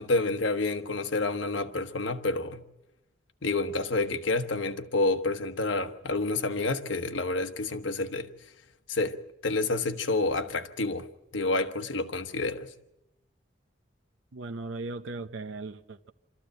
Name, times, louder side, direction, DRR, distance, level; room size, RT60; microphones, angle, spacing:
voice 1, 0.0-2.6 3.4-8.3 8.9-9.2 9.4-11.1 11.3-12.7, left 3 dB, 80° left, 1.2 m, -29 dB
voice 2, 14.3-16.1, right 3 dB, 80° right, 0.7 m, -38 dB
25.5 x 14.0 x 7.7 m
head